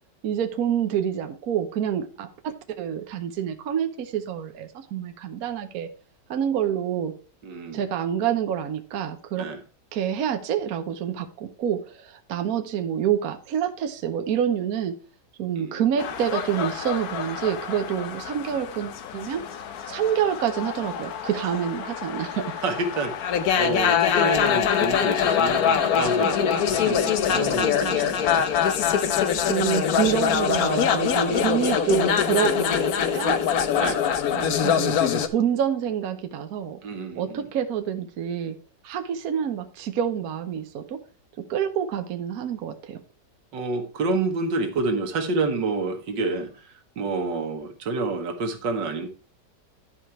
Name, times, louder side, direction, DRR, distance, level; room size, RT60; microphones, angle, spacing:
voice 1, 0.2-5.9 6.3-7.2 7.7-9.5 9.9-15.0 15.4-19.4 19.9-22.5 29.5-33.4 34.3-36.8 37.2-38.6 38.8-41.0 41.5-43.0, right 9 dB, 60° right, 1.3 m, -27 dB
voice 2, 7.4-7.8 9.4-9.6 15.6-15.8 22.6-28.5 31.3-31.7 33.7-34.0 36.8-37.5 43.5-46.7 47.0-49.1, right 3 dB, 90° right, 2.0 m, -29 dB
sound 1, 16.0-35.3, left 8 dB, 65° left, 1.2 m, -24 dB
11.0 x 5.0 x 4.4 m
omnidirectional pair, 1.9 m